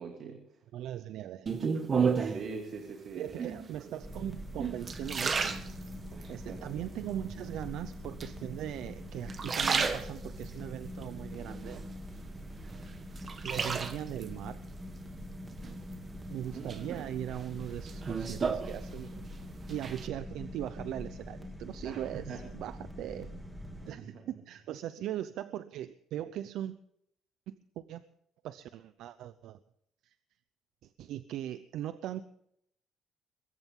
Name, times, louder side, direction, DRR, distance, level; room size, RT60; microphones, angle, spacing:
voice 1, 0.0-0.6 2.2-3.5 3.8-3.9 6.1-6.7 16.5-17.1 21.8-22.4 23.1-23.3 23.8-24.3, right 5 dB, 60° right, 3 dB, 2.6 m, -44 dB
voice 2, 0.7-1.9 3.2-5.6 6.3-12.2 13.4-14.6 16.3-19.3 19.7-23.3 23.9-26.8 27.5-28.0 28.4-29.6 30.0-30.1 30.8-32.2, right 12 dB, 75° right, 13 dB, 0.7 m, -39 dB
sound 1, 1.5-2.5 3.3-3.8 4.3-6.3 6.8-7.4 8.2-8.9 9.2-10.5 11.0-12.2 12.6-14.3 15.6-16.2 16.7-19.3 19.6-20.1, right 5 dB, 35° right, 1.6 m, -33 dB
sound 2, 4.0-23.9, equal, 5° right, 2.7 m, -44 dB
23.0 x 14.0 x 3.8 m, 0.72 s
cardioid pair, 115°, 0 cm